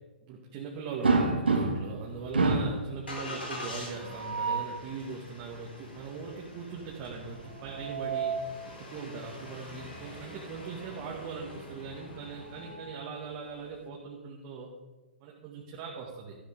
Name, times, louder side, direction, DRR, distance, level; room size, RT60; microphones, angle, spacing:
voice 1, 0.2-14.7 15.2-16.4, right 5 dB, 40° right, -2 dB, 2.0 m, -40 dB
sound 1, 1.0-2.0 2.3-2.8 4.0-4.8 7.5-8.5 9.9-10.1 10.5-10.6 12.1-13.3, right 3 dB, 80° right, 2.1 m, -29 dB
Engine starting, 2.0-12.7, left 1 dB, 85° left, 3.9 m, -45 dB
13.0 x 12.5 x 3.7 m, 1.2 s
figure-of-eight pair, 115°, 5 cm